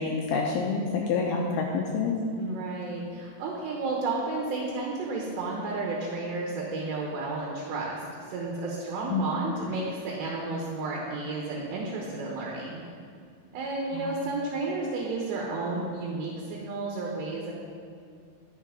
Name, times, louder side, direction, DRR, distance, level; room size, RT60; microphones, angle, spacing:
voice 1, 0.0-2.2 9.1-9.4 14.0-14.1, left 4 dB, 80° left, -1 dB, 2.3 m, -28 dB
voice 2, 1.2-1.8 2.4-8.0 8.3-12.8 13.5-17.5, right 3 dB, 85° right, -2 dB, 3.3 m, -32 dB
12.5 x 6.3 x 3.7 m, 2.2 s
omnidirectional pair, 4.8 m